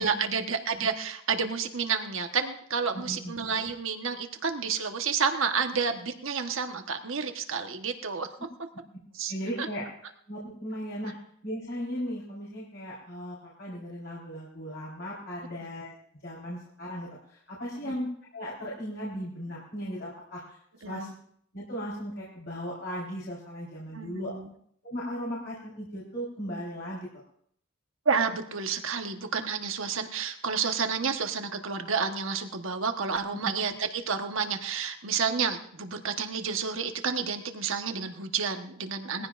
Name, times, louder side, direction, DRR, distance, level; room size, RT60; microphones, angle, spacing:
voice 1, 0.0-8.3 9.1-9.3 9.6-9.7 17.8-17.9 20.8-21.1 23.9-24.5 28.0-39.3, right 5 dB, 70° right, 6 dB, 1.3 m, -30 dB
voice 2, 2.9-3.3 9.3-9.8 10.3-11.1 11.4-15.9 16.2-18.1 18.3-20.5 20.8-21.1 21.5-24.3 24.8-27.1 33.3-33.5, equal, 55° left, -6 dB, 4.3 m, -37 dB
20.5 x 15.5 x 2.6 m, 0.67 s
head